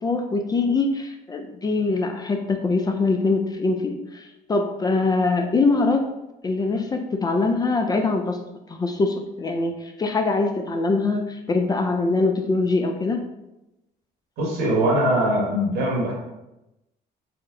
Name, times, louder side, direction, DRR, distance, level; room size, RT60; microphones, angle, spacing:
voice 1, 0.0-6.2 6.4-8.4 8.7-13.2, left 3 dB, 25° left, 5 dB, 0.4 m, -23 dB
voice 2, 14.4-16.1, right 1 dB, 80° right, -2 dB, 1.4 m, -21 dB
4.3 x 2.0 x 3.7 m, 0.94 s
cardioid pair, 110°, 17 cm